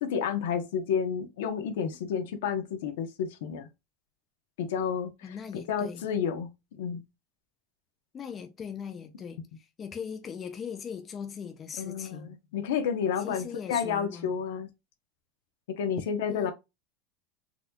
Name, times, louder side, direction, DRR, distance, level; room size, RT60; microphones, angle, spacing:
voice 1, 0.0-3.7 4.6-6.5 6.8-7.0 11.7-14.7 15.8-16.5, left 7 dB, 85° left, 0.8 m, -30 dB
voice 2, 5.2-6.0 8.1-9.4 9.8-12.3 13.2-14.3 16.3-16.5, left 7 dB, 20° left, 0.3 m, -39 dB
4.0 x 2.3 x 2.7 m
supercardioid pair, 175°, 0 cm